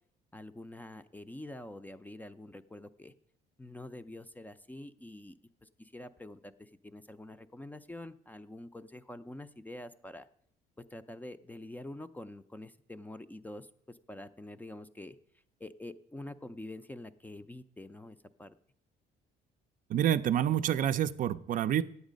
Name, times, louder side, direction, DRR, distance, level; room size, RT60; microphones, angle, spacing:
voice 1, 0.3-3.1 3.6-10.3 10.9-15.2 15.6-18.5, left 1 dB, 10° left, 12 dB, 0.4 m, -46 dB
voice 2, 19.9-21.8, right 10 dB, 55° right, 12 dB, 0.5 m, -28 dB
9.6 x 8.2 x 5.1 m, 0.67 s
cardioid pair, 110°, 17 cm